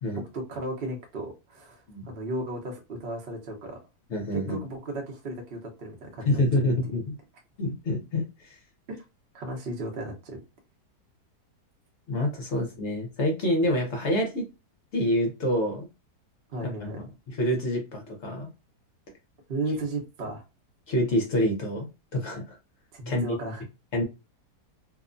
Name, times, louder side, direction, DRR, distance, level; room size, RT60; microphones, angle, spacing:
voice 1, 0.1-3.8 4.3-6.4 8.9-9.0 9.3-10.4 16.5-17.0 19.5-20.4 22.9-23.6, right 2 dB, 50° right, 0.7 m, -35 dB
voice 2, 4.1-4.6 6.2-7.1 7.6-8.6 12.1-14.5 14.9-15.9 16.6-16.9 17.3-18.5 20.9-22.6 23.1-23.4 23.9-24.0, left 1 dB, 55° left, 0.8 m, -27 dB
2.8 x 2.1 x 2.5 m
omnidirectional pair, 1.8 m